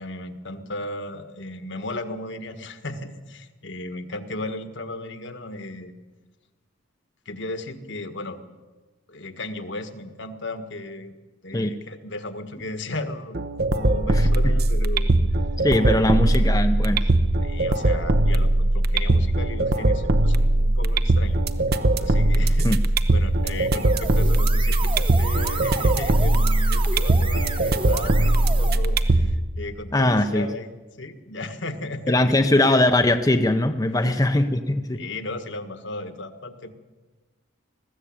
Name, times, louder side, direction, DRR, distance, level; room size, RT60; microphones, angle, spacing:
voice 1, 0.0-5.9 7.3-8.4 9.1-11.1 11.4-13.4 13.7-15.1 15.9-16.1 17.4-21.4 22.0-22.7 23.1-30.7 31.0-32.6 33.9-34.2 34.9-36.7, left 2 dB, 60° left, 9 dB, 1.6 m, -35 dB
sound 1, 13.3-29.3, right 1 dB, 50° right, 0.9 m, -20 dB
voice 2, 15.6-17.0 22.6-22.8 29.9-30.5 32.1-35.0, left 1 dB, 20° left, 6 dB, 0.7 m, -21 dB
sound 2, 23.5-28.8, right 4 dB, 25° right, 1.2 m, -33 dB
20.5 x 15.0 x 8.8 m, 1.3 s
head